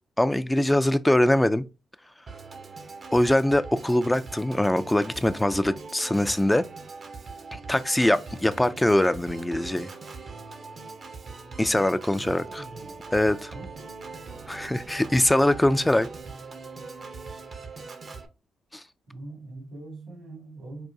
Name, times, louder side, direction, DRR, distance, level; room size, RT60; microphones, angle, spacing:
voice 1, 0.2-1.6 3.1-6.6 7.5-9.9 11.6-12.4 13.1-13.5 14.5-16.1 18.7-18.8, left 1 dB, 10° left, 0.3 m, -22 dB
Organ, 2.3-18.3, right 4 dB, 55° right, 0.7 m, -41 dB
voice 2, 12.2-13.0 13.5-14.1 15.8-16.1 19.1-20.9, right 2 dB, 80° right, 2.1 m, -43 dB
4.8 x 2.2 x 2.6 m
supercardioid pair, 50°, 0 cm